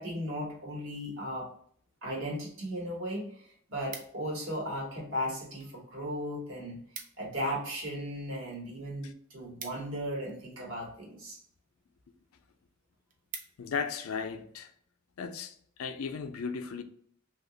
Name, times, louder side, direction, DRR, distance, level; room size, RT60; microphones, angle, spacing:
voice 1, 0.0-1.5 2.0-6.8 7.2-11.4, equal, 75° right, 1.1 m, -36 dB
sound 1, 3.3-4.5 5.2-5.7 6.0-6.1 6.4-6.5 6.7-7.4 7.7-10.6 11.3-11.6 12.1-12.2 12.6-12.7 12.9-13.9 14.4-14.6, right 5 dB, 40° right, 0.4 m, -47 dB
voice 2, 13.6-14.7 15.2-16.8, left 6 dB, 90° left, 0.4 m, -36 dB
2.8 x 2.3 x 3.7 m
head